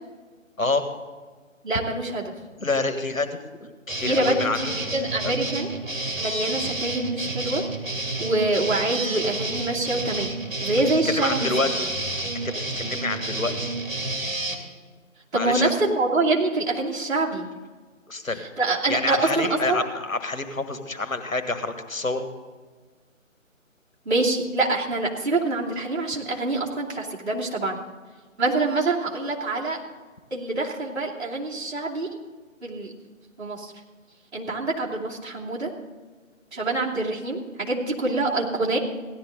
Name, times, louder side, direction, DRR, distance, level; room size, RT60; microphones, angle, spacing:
voice 1, 0.6-0.9 2.6-4.8 5.2-5.3 11.0-11.9 12.4-13.5 15.3-15.7 18.1-18.4 18.9-22.3, left 3 dB, 80° left, 8 dB, 1.7 m, -27 dB
voice 2, 1.6-2.3 4.0-5.7 6.2-7.6 8.2-10.3 10.6-11.5 15.3-17.4 18.6-19.8 24.0-27.8 28.4-29.8 30.3-32.1 32.6-32.9 33.4-33.7 34.3-35.7 36.5-38.8, right 2 dB, 55° right, -4 dB, 2.9 m, -25 dB
sound 1, 3.9-14.5, right 2 dB, 70° right, 2.6 m, -30 dB
17.0 x 11.0 x 3.9 m, 1.4 s
figure-of-eight pair, 150°, 40 cm